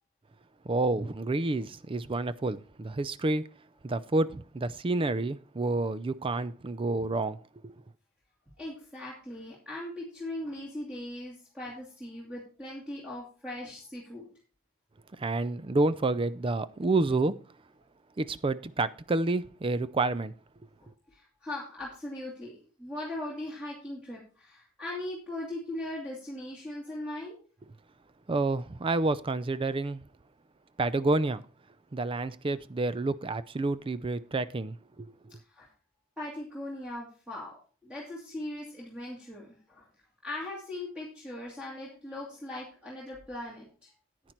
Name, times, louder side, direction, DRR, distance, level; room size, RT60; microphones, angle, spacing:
voice 1, 0.6-3.5 3.8-7.4 7.6-7.7 15.2-17.4 18.2-20.3 28.3-30.1 30.8-31.4 31.9-35.1, right 2 dB, 25° right, 0.4 m, -29 dB
voice 2, 8.6-14.3 20.8-27.4 35.5-35.7 36.2-37.5 37.8-39.9 40.2-43.9, left 1 dB, 5° right, 2.6 m, -39 dB
10.0 x 9.2 x 4.4 m
head